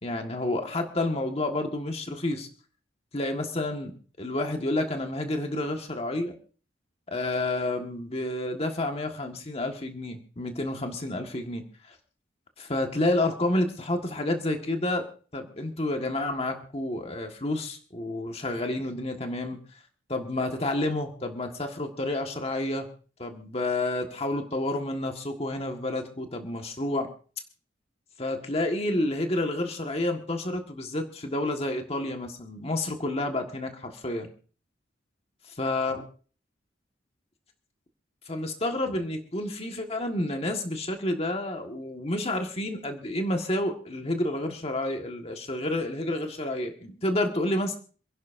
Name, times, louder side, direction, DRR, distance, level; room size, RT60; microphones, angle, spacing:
voice 1, 0.0-2.5 3.1-3.9 4.2-6.4 7.1-11.9 12.6-15.1 15.3-19.6 20.1-22.9 23.2-27.1 28.2-34.3 35.6-36.0 38.2-47.8, left 1 dB, 30° left, 4 dB, 1.7 m, -29 dB
28.0 x 11.0 x 2.7 m, 0.40 s
head